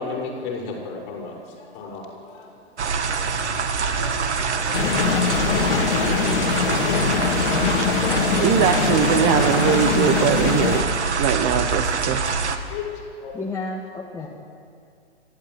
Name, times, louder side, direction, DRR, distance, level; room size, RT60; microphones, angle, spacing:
voice 1, 0.0-2.6 3.1-6.2 6.7-8.5 9.0-9.1 9.6-10.2 10.6-11.9 12.1-13.4 14.2-14.3, left 4 dB, 30° left, -1 dB, 6.0 m, -37 dB
sound 1, 2.8-12.6, right 5 dB, 75° right, 2.3 m, -25 dB
sound 2, 4.7-10.8, left 6 dB, 45° left, 2.6 m, -22 dB
voice 2, 8.4-10.8 11.2-12.2, right 9 dB, 25° right, 8 dB, 1.0 m, -21 dB
voice 3, 13.3-14.3, left 3 dB, 10° left, -3 dB, 1.8 m, -31 dB
29.5 x 13.0 x 9.6 m, 2.3 s
hypercardioid pair, 145°, 34 cm